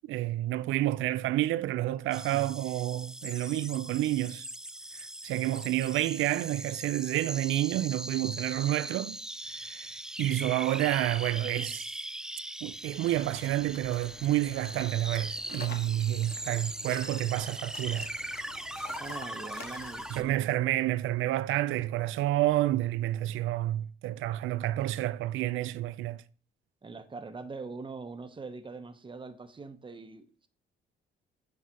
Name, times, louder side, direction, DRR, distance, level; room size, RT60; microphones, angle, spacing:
voice 1, 0.1-4.5 4.9-9.2 9.5-11.9 12.6-18.1 20.1-26.2, right 14 dB, 85° right, 0.4 m, -29 dB
sound 1, 2.1-20.2, right 1 dB, 5° right, 0.3 m, -40 dB
sound 2, 12.7-20.4, left 5 dB, 55° left, 1.6 m, -48 dB
voice 2, 19.0-20.5 26.8-30.5, right 4 dB, 25° right, 1.0 m, -43 dB
8.6 x 4.1 x 4.6 m
cardioid pair, 90°, 20 cm